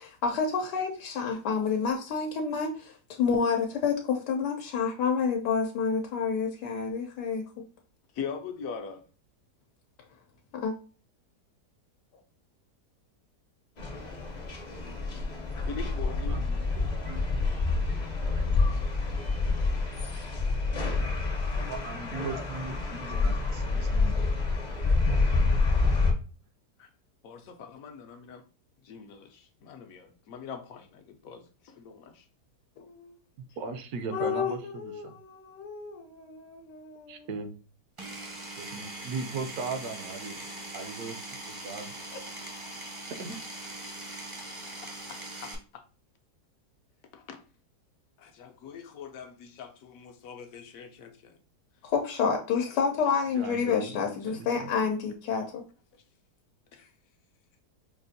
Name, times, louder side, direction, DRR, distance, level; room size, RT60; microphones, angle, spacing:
voice 1, 0.2-7.6 10.5-10.7 32.8-33.1 34.1-37.3 51.8-55.6, left 6 dB, 90° left, 1.2 m, -29 dB
voice 2, 8.1-9.0 12.1-12.2 15.7-16.5 26.8-26.9 27.2-28.4 28.8-32.3 42.1-42.2 44.8-45.8 47.1-47.4 48.2-51.4 52.6-52.9 54.2-54.4 56.7-56.9, left 6 dB, 70° left, 0.9 m, -42 dB
sound 1, 13.8-26.1, left 3 dB, 45° left, 0.6 m, -28 dB
voice 3, 16.3-17.2 18.4-18.5 21.5-24.1 33.6-35.1 37.1-37.5 38.6-40.4 40.7-41.9 43.2-43.4 53.4-54.9, right 4 dB, 70° right, 1.1 m, -38 dB
Power tool, 38.0-45.5, right 1 dB, 30° right, 0.5 m, -41 dB
5.3 x 2.4 x 2.6 m
omnidirectional pair, 1.7 m